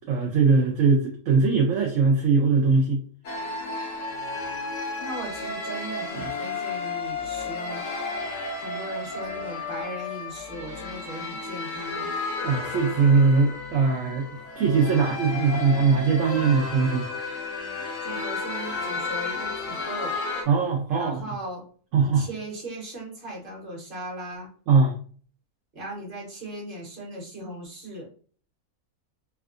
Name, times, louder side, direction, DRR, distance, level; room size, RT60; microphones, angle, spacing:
voice 1, 0.1-3.0 6.1-6.3 12.4-14.3 14.6-17.1 20.5-21.2 21.9-22.3 24.7-24.9, right 4 dB, 65° right, 1 dB, 0.8 m, -21 dB
sound 1, 3.2-20.4, left 3 dB, 65° left, 1.0 m, -33 dB
voice 2, 5.0-7.8 8.5-12.1 18.0-20.2 20.9-21.6 22.0-24.5 25.7-28.1, right 1 dB, 40° right, -3 dB, 1.2 m, -38 dB
3.4 x 2.3 x 2.4 m, 0.44 s
omnidirectional pair, 1.6 m